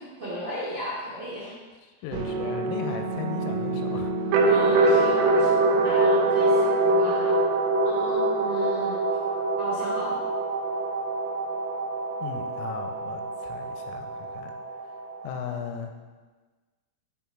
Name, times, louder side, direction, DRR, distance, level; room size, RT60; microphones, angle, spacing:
voice 1, 0.0-1.5 4.4-5.5 5.8-7.3 7.8-8.9 9.6-10.2, equal, 50° right, -9 dB, 1.3 m, -35 dB
voice 2, 2.0-4.1 12.2-14.5 15.2-15.9, left 8 dB, 85° left, 5 dB, 3.1 m, -36 dB
sound 1, 2.1-15.7, right 2 dB, 85° right, 3.5 m, -25 dB
10.5 x 3.7 x 4.5 m, 1.3 s
omnidirectional pair, 6.0 m